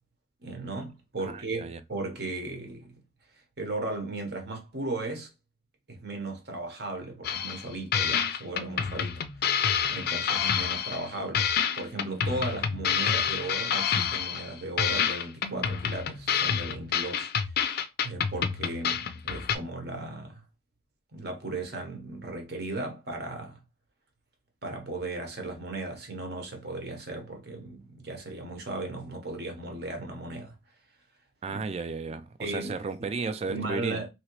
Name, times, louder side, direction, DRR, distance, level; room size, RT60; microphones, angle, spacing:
voice 1, 0.4-2.9 3.6-5.3 5.9-9.3 9.9-11.5 11.8-17.3 17.6-20.4 21.1-23.6 24.6-30.5 31.4-31.6 32.4-32.7 33.5-34.1, right 2 dB, 60° right, 1.0 m, -36 dB
voice 2, 1.3-1.8 31.4-34.0, right 4 dB, 35° right, 0.3 m, -34 dB
sound 1, 7.2-7.7 7.9-11.1 11.3-14.5 14.8-19.6, left 7 dB, 55° left, 0.4 m, -28 dB
3.0 x 2.8 x 3.0 m
head